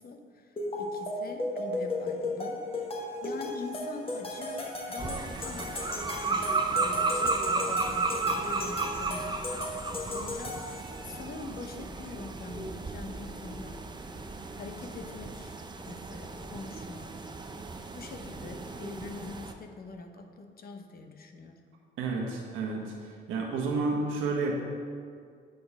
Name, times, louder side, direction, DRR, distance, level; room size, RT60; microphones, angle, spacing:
voice 1, 0.0-2.6 3.2-9.4 10.0-10.7 11.0-13.8 14.5-15.6 15.8-17.2 17.9-21.6, left 3 dB, 50° left, 5 dB, 0.8 m, -44 dB
sound 1, 0.6-11.2, left 2 dB, 30° left, 1.2 m, -36 dB
sound 2, 5.0-19.5, right 4 dB, 20° right, 0.5 m, -34 dB
voice 2, 22.0-22.9 23.3-24.6, right 3 dB, 90° right, -1 dB, 1.2 m, -30 dB
8.6 x 4.0 x 4.9 m, 2.2 s
cardioid pair, 90°, 20 cm